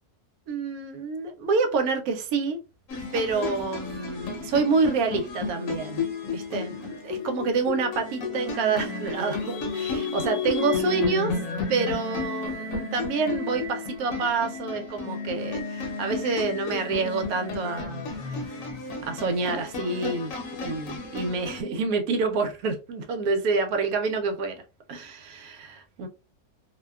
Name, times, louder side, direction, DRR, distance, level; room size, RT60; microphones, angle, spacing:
voice 1, 0.5-2.6 3.1-6.0 6.3-11.3 11.7-18.0 19.1-20.4 20.6-24.5 24.9-26.1, right 4 dB, 70° right, 1.0 m, -27 dB
sound 1, 2.9-21.6, left 4 dB, 65° left, 1.0 m, -32 dB
2.7 x 2.1 x 2.2 m
omnidirectional pair, 1.7 m